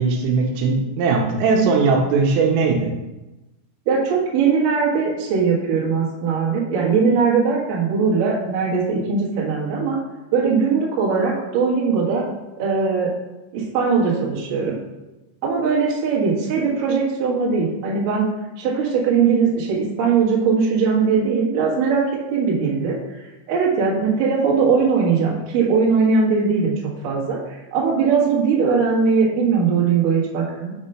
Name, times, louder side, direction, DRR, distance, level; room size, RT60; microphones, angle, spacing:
voice 1, 0.0-2.9, right 4 dB, 85° right, 2 dB, 3.3 m, -19 dB
voice 2, 3.9-10.0 10.3-12.2 12.6-13.1 13.5-14.7 15.4-18.3 18.6-22.0 22.3-23.0 23.5-26.8 27.0-30.7, right 5 dB, 60° right, -5 dB, 2.5 m, -20 dB
6.6 x 5.0 x 4.3 m, 1.0 s
omnidirectional pair, 5.9 m